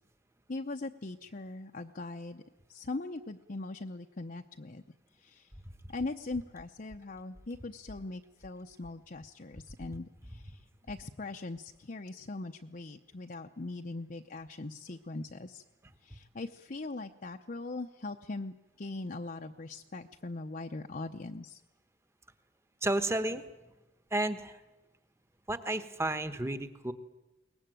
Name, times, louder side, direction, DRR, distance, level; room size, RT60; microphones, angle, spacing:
voice 1, 0.5-2.4 2.7-4.8 5.2-5.5 5.9-10.6 10.9-15.6 16.0-21.6, left 2 dB, 45° left, 4 dB, 0.8 m, -41 dB
voice 2, 22.8-23.4 24.1-24.6 25.5-26.9, right 1 dB, 15° right, 10 dB, 1.2 m, -32 dB
22.5 x 19.5 x 9.2 m, 1.1 s
head